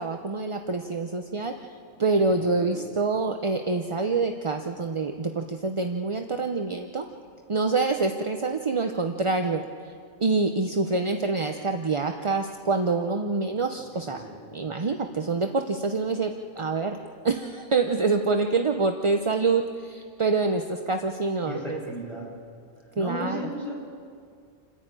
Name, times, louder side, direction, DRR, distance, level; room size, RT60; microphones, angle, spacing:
voice 1, 0.0-1.7 2.0-7.1 7.5-9.6 10.2-14.2 14.5-17.0 17.2-21.8 23.0-23.5, right 3 dB, 30° right, 5 dB, 0.6 m, -26 dB
voice 2, 21.4-22.3 22.9-23.7, equal, ahead, -6 dB, 7.6 m, -35 dB
28.5 x 10.5 x 9.0 m, 2.2 s
omnidirectional pair, 1.4 m